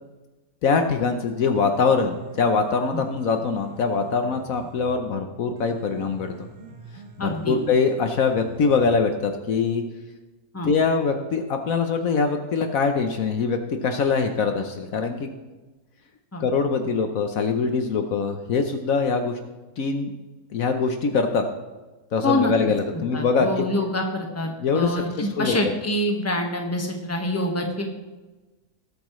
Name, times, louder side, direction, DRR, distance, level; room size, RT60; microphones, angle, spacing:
voice 1, 0.6-6.3 7.2-9.8 10.6-15.3 16.4-19.4 19.8-20.1 20.5-21.4 22.1-23.6 24.6-25.7, left 5 dB, 65° left, 6 dB, 1.2 m, -23 dB
Piano, 1.4-9.4, right 4 dB, 45° right, 1.5 m, -45 dB
voice 2, 7.2-7.6 10.5-10.7 16.3-16.4 22.2-22.5 23.1-27.8, left 1 dB, 10° left, 2 dB, 1.3 m, -26 dB
19.5 x 8.6 x 3.2 m, 1.2 s
omnidirectional pair, 1.6 m